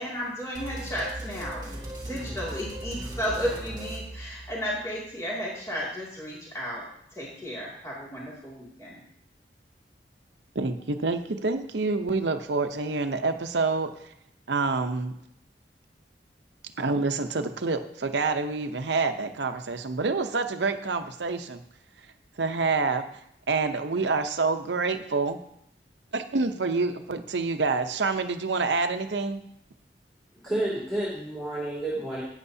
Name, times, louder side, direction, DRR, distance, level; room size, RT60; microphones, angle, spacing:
voice 1, 0.0-1.6 2.1-6.8 7.1-9.0, equal, 20° left, -6 dB, 2.4 m, -33 dB
sound 1, 0.5-4.9, right 1 dB, 25° right, 2.3 m, -38 dB
voice 2, 10.5-13.9 14.5-15.2 16.8-21.6 22.4-23.0 23.5-25.4 26.1-29.4, right 4 dB, 90° right, 8 dB, 0.8 m, -27 dB
voice 3, 30.4-32.2, right 1 dB, ahead, -8 dB, 2.5 m, -30 dB
12.5 x 9.0 x 2.8 m, 0.74 s
head